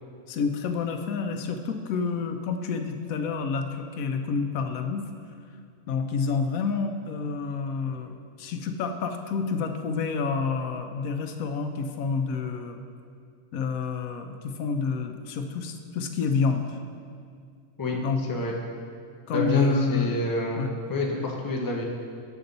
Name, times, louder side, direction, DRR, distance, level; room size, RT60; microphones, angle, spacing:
voice 1, 0.3-5.1 5.9-12.8 13.5-16.8 18.0-18.2 19.3-20.1 20.6-20.7, left 5 dB, 85° left, 6 dB, 1.0 m, -29 dB
voice 2, 19.3-21.8, left 2 dB, 20° left, 0 dB, 0.6 m, -27 dB
6.9 x 6.8 x 3.9 m, 2.2 s
omnidirectional pair, 1.4 m